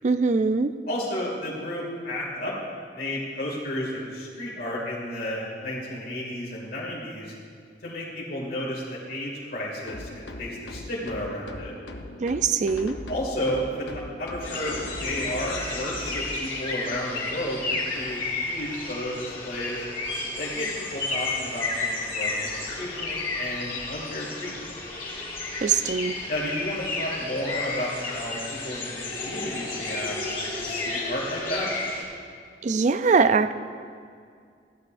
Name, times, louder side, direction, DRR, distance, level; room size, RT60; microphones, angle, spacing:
voice 1, 0.0-0.7 12.2-12.9 25.6-26.2 32.6-33.5, right 4 dB, 40° right, 12 dB, 0.4 m, -22 dB
voice 2, 0.9-2.5 2.9-7.3 7.8-11.7 13.1-17.6 17.9-19.8 20.4-24.7 26.3-31.7, left 1 dB, 55° left, -5 dB, 2.3 m, -32 dB
sound 1, 9.9-16.3, left 1 dB, 80° left, 0.9 m, -39 dB
sound 2, 14.4-32.0, left 3 dB, 30° left, 3.1 m, -32 dB
16.0 x 12.0 x 2.6 m, 2.2 s
head